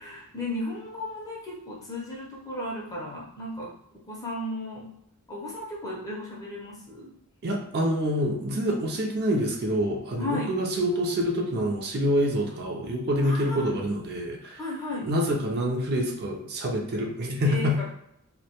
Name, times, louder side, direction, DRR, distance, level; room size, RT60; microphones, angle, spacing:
voice 1, 0.0-3.7 4.1-4.9 5.3-7.1 10.2-10.5 13.2-13.7 14.6-15.1 17.4-17.9, left 1 dB, 15° left, -4 dB, 0.5 m, -34 dB
voice 2, 7.4-14.6 15.0-17.7, equal, 45° right, 0 dB, 0.4 m, -26 dB
2.1 x 2.1 x 2.8 m, 0.77 s
head